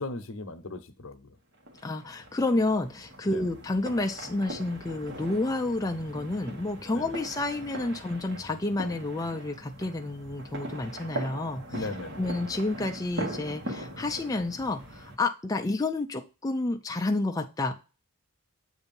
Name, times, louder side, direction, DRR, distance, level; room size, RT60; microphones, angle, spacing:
voice 1, 0.0-1.4 3.2-3.5 6.9-7.1 11.7-12.3, left 2 dB, 65° left, 0.8 m, -38 dB
sound 1, 1.7-15.2, right 1 dB, 55° right, 1.2 m, -40 dB
voice 2, 1.8-11.9 12.2-17.7, left 2 dB, 15° left, 0.4 m, -30 dB
8.0 x 2.7 x 5.3 m
head